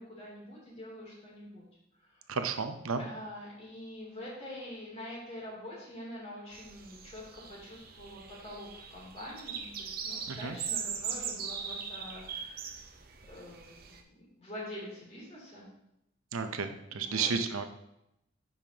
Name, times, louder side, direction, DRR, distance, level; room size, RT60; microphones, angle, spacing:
voice 1, 0.0-1.7 2.0-2.2 2.9-12.8 13.3-15.7 16.9-17.3, left 1 dB, 30° left, -6 dB, 2.9 m, -45 dB
voice 2, 2.3-3.0 10.3-10.5 16.3-17.7, right 5 dB, 80° right, 7 dB, 0.7 m, -32 dB
sound 1, 6.5-14.0, right 6 dB, 45° right, 0.7 m, -40 dB
10.0 x 5.6 x 2.9 m, 0.83 s
head